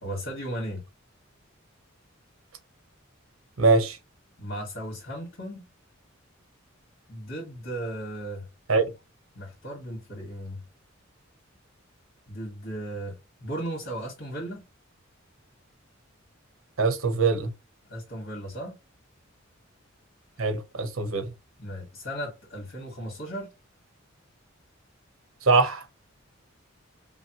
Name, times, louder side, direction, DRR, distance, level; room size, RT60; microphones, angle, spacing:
voice 1, 0.0-0.8 4.4-5.6 7.1-8.5 9.3-10.6 12.3-14.6 17.9-18.8 21.6-23.5, right 1 dB, 55° left, 1.8 m, -36 dB
voice 2, 3.6-4.0 8.7-8.8 16.8-17.5 20.4-21.3 25.4-25.8, right 4 dB, 90° right, 1.0 m, -22 dB
5.5 x 2.2 x 3.0 m
head